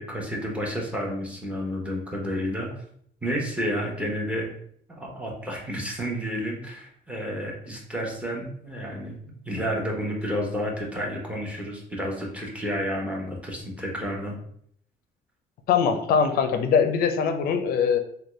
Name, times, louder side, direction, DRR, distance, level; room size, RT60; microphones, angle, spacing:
voice 1, 0.0-2.7 3.2-4.5 4.9-14.4, equal, 5° right, -1 dB, 0.9 m, -30 dB
voice 2, 15.7-18.0, left 6 dB, 60° left, 8 dB, 0.4 m, -22 dB
3.5 x 2.3 x 3.0 m, 0.67 s
cardioid pair, 110°, 17 cm